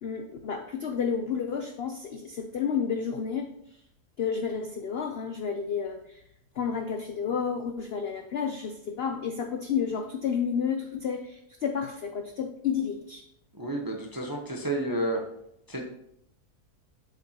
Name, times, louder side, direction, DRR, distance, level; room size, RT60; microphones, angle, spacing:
voice 1, 0.0-3.8 4.2-6.2 6.6-13.2, left 6 dB, 70° left, 5 dB, 0.6 m, -31 dB
voice 2, 13.5-15.2 15.7-15.9, right 1 dB, 20° right, 1 dB, 0.6 m, -31 dB
7.8 x 6.9 x 2.9 m, 0.75 s
omnidirectional pair, 1.7 m